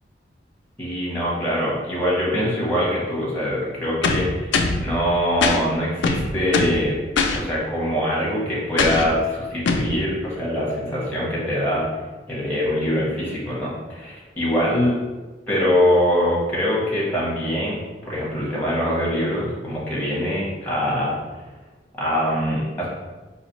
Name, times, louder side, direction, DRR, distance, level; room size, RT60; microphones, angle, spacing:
voice 1, 0.8-6.9 7.3-11.8 12.3-14.9 15.5-17.8 18.0-21.2 22.0-22.9, equal, 10° left, -6 dB, 1.0 m, -23 dB
sound 1, 4.0-4.8 5.4-5.6 6.0-6.8 7.2-7.4 8.8-9.1 9.7-9.9, left 4 dB, 75° left, 0.4 m, -21 dB
4.0 x 2.7 x 3.1 m, 1.2 s
head